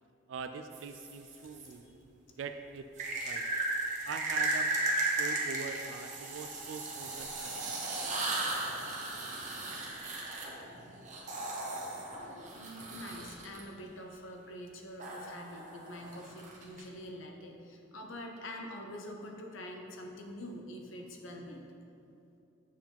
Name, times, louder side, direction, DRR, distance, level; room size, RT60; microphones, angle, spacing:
voice 1, 0.3-2.9 3.2-3.4 4.0-4.7 5.2-7.7, right 5 dB, 75° right, 7 dB, 0.3 m, -43 dB
sound 1, 0.7-1.7 3.0-13.6 15.0-16.8, right 2 dB, 40° right, 1.1 m, -36 dB
voice 2, 12.5-21.6, equal, 85° left, 2 dB, 0.9 m, -45 dB
7.3 x 4.7 x 5.8 m, 2.7 s
head